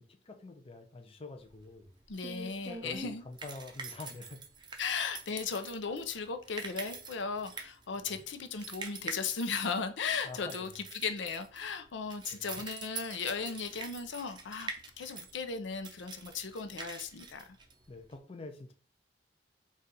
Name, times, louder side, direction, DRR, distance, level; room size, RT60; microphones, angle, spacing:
voice 1, 0.0-1.9 2.8-4.4 8.0-8.2 10.2-10.7 12.3-12.4 17.9-18.7, left 3 dB, 30° left, 0.5 m, -47 dB
sound 1, 1.5-18.2, right 4 dB, 25° right, 0.5 m, -45 dB
voice 2, 2.1-3.2 4.8-17.6, left 5 dB, 85° left, 0.5 m, -36 dB
4.1 x 2.4 x 3.9 m
head